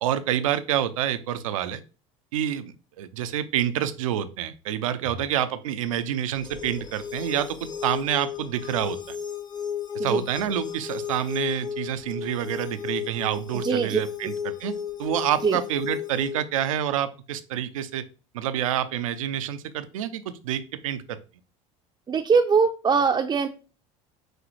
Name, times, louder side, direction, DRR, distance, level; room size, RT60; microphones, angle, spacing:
voice 1, 0.0-1.8 2.3-9.2 9.9-18.0 18.3-21.2, right 10 dB, 85° right, 12 dB, 0.5 m, -28 dB
sound 1, 6.4-16.4, left 7 dB, 25° left, 0.7 m, -34 dB
voice 2, 13.5-14.0 15.4-15.6 22.1-23.5, right 5 dB, 25° right, 3 dB, 0.4 m, -22 dB
6.1 x 2.4 x 3.1 m, 0.34 s
hypercardioid pair, 80°, 17 cm